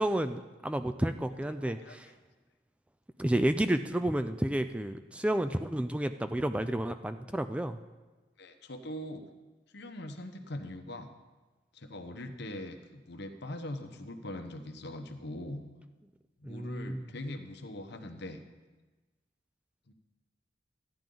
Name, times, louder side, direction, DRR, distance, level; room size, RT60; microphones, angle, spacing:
voice 1, 0.0-2.1 3.2-7.8 16.4-17.1, right 1 dB, 5° right, 10 dB, 0.3 m, -31 dB
voice 2, 1.6-2.0 8.4-9.2 9.7-11.1 11.7-15.6 16.4-18.4 19.9-20.0, left 1 dB, 65° left, 7 dB, 1.0 m, -41 dB
14.0 x 10.5 x 3.9 m, 1.2 s
head